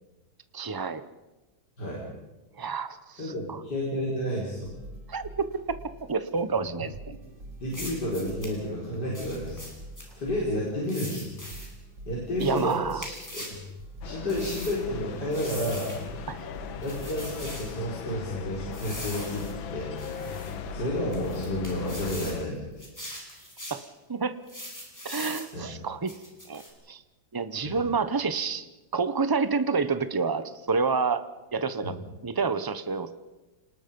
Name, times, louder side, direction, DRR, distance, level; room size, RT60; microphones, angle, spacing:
voice 1, 0.5-1.0 2.6-3.6 5.1-5.3 6.1-6.9 12.4-13.1 16.3-16.5 20.5-20.6 23.7-23.8 24.1-24.3 25.0-26.2 26.5-26.6 26.9-27.0 27.3-28.7 28.9-31.2 31.5-32.0 32.2-33.1, right 4 dB, 35° right, 12 dB, 0.3 m, -28 dB
voice 2, 3.2-4.7 7.6-9.7 10.2-11.3 12.1-13.5 14.0-15.9 16.8-20.0 20.7-22.6 25.5-25.7 27.6-27.8 31.8-31.9, left 1 dB, 55° left, -5 dB, 5.3 m, -31 dB
sound 1, 4.4-22.7, equal, 65° right, 3.2 m, -45 dB
sound 2, 7.7-8.6 9.1-10.1 10.9-11.7 12.4-13.6 14.3-14.8 15.3-16.0 16.8-17.7 18.7-19.5 20.0-20.6 21.1-22.4 22.8-23.8 24.5-25.5 26.1-26.7, equal, 10° left, 4.6 m, -41 dB
sound 3, 14.0-22.5, left 8 dB, 80° left, 1.9 m, -38 dB
28.5 x 19.5 x 5.4 m, 1.1 s
omnidirectional pair, 2.1 m